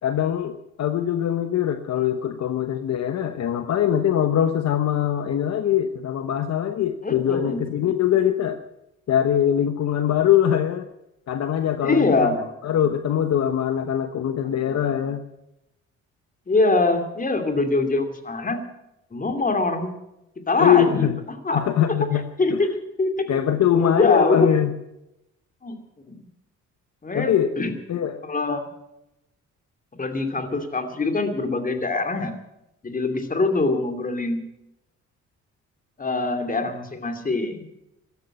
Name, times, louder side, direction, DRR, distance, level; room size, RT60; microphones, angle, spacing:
voice 1, 0.0-8.6 9.1-10.9 11.3-12.3 12.6-15.2 20.6-21.1 21.5-22.6 23.3-24.7 27.1-27.5 27.9-28.2, left 10 dB, 60° left, 9 dB, 1.0 m, -22 dB
voice 2, 7.0-7.6 11.8-12.5 16.5-18.6 19.1-19.9 20.5-21.1 21.4-21.6 22.4-22.7 23.0-23.3 23.7-24.5 25.6-25.8 26.1-26.2 27.0-27.7 28.2-28.6 29.9-32.3 32.8-34.4 36.0-37.6, left 3 dB, 25° left, 7 dB, 2.7 m, -23 dB
14.0 x 13.0 x 7.7 m, 0.88 s
cardioid pair, 90°, 30 cm